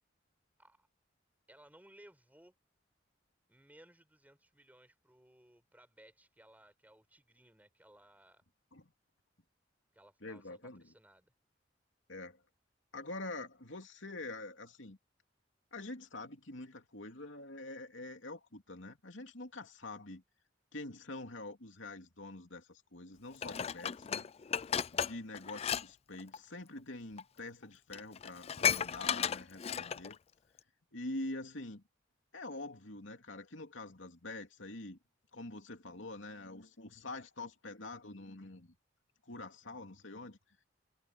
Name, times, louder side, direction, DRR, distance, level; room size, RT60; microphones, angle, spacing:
voice 1, 1.5-2.5 3.5-8.4 9.9-11.3, right 1 dB, 10° right, 4.7 m, -61 dB
voice 2, 10.2-10.8 12.1-12.4 12.9-15.0 15.7-20.2 20.7-24.3 24.9-30.2 30.9-31.8 32.3-35.0 35.3-38.7 39.3-40.4, left 2 dB, 80° left, 2.8 m, -45 dB
Dishes pots and pans, 23.4-25.8 26.1-26.4 27.2-27.3 27.6-27.7 27.9-30.1 30.6-30.7, left 8 dB, 30° left, 0.4 m, -34 dB
head